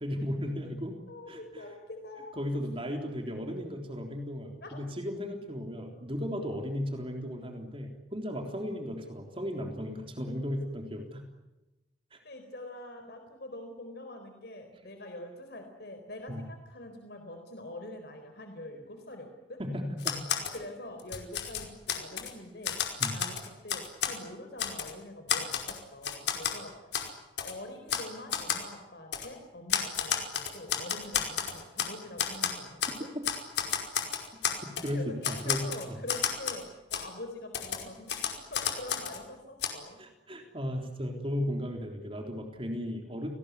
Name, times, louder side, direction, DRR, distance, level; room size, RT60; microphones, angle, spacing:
voice 1, 0.0-1.0 1.3-1.6 2.4-11.2 12.1-12.2 16.3-16.4 19.6-20.2 23.0-23.2 34.8-36.0 40.0-43.3, equal, 30° right, 3 dB, 3.6 m, -35 dB
voice 2, 1.1-2.4 4.6-4.8 12.2-19.6 20.5-22.8 23.1-27.0 27.4-33.1 33.7-33.8 34.9-38.1 38.5-40.0, left 1 dB, 65° left, 5 dB, 4.2 m, -45 dB
Typewriter, 20.0-20.6 21.0-22.3 22.6-24.2 24.6-24.9 25.3-26.6 26.9-27.1 27.4-27.5 27.9-28.1 28.3-28.6 29.1-29.3 29.7-31.9 32.2-33.0 33.2-34.9 35.2-36.6 36.9-37.0 37.5-39.2 39.6-39.7, left 8 dB, 80° left, 5.2 m, -31 dB
29.0 x 20.0 x 9.6 m, 1.0 s
head